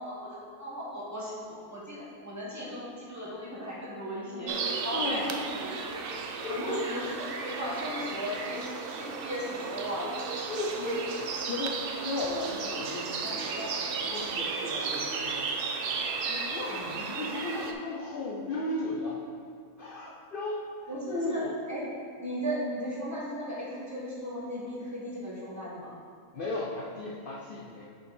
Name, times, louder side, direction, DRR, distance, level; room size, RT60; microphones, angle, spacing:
voice 1, 0.0-6.1 6.5-10.2 10.7-10.9 16.7-17.0 20.9-21.8 22.2-25.9, equal, 10° right, -8 dB, 1.5 m, -36 dB
sound 1, 4.5-17.7, right 5 dB, 85° right, 0.4 m, -34 dB
voice 2, 4.9-5.3 6.4-6.8 10.5-15.7 16.3-19.2 19.8-21.5 26.3-27.9, left 2 dB, 55° left, -3 dB, 0.6 m, -35 dB
6.7 x 5.3 x 4.3 m, 2.2 s
omnidirectional pair, 1.6 m